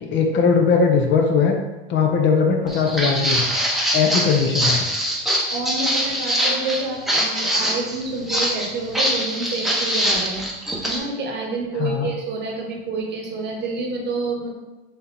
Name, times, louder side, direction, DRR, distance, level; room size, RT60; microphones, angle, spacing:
voice 1, 0.0-1.6 1.9-3.5 3.9-4.8 11.8-12.1, left 5 dB, 40° left, 3 dB, 0.7 m, -19 dB
Walk footsteps, 2.7-11.0, equal, ahead, 0.8 m, -23 dB
voice 2, 5.5-14.5, right 3 dB, 35° right, 0 dB, 1.0 m, -28 dB
3.7 x 2.8 x 3.9 m, 1.1 s
hypercardioid pair, 100°, 29 cm